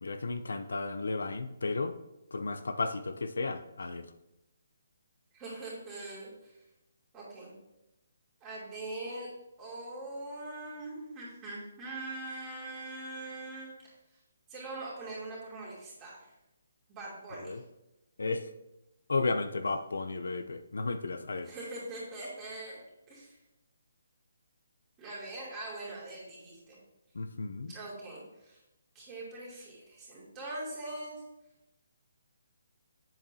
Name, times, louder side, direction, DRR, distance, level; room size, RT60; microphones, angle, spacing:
voice 1, 0.0-1.9 2.3-4.0 17.5-17.6 18.2-18.5 19.1-21.5 27.1-27.7, left 3 dB, 90° left, 9 dB, 0.6 m, -33 dB
voice 2, 5.3-6.6 7.1-7.5 8.4-9.3 9.6-14.0 14.5-16.3 16.9-17.6 21.4-22.8 23.1-23.4 25.0-26.8 27.7-28.6 28.9-31.2, right 2 dB, 15° right, -6 dB, 2.5 m, -42 dB
7.9 x 7.2 x 2.8 m, 0.90 s
hypercardioid pair, 165°, 0 cm